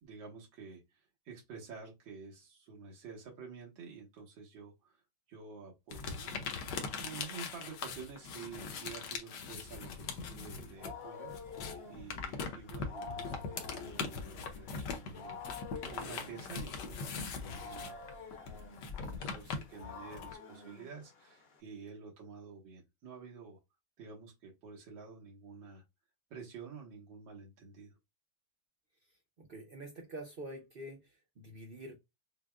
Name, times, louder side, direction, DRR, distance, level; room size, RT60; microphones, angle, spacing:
voice 1, 0.0-5.0 5.3-6.6 6.8-11.6 11.9-15.4 15.9-18.0 18.6-23.6 24.0-25.8 26.3-27.9, right 5 dB, 85° right, 2.0 m, -50 dB
sound 1, 5.9-11.0 11.2-20.3, left 5 dB, 70° left, 1.4 m, -41 dB
Wild animals, 10.4-21.6, left 4 dB, 45° left, 0.8 m, -49 dB
voice 2, 29.4-32.0, right 1 dB, 60° right, 0.5 m, -46 dB
6.4 x 2.2 x 2.3 m
omnidirectional pair, 2.0 m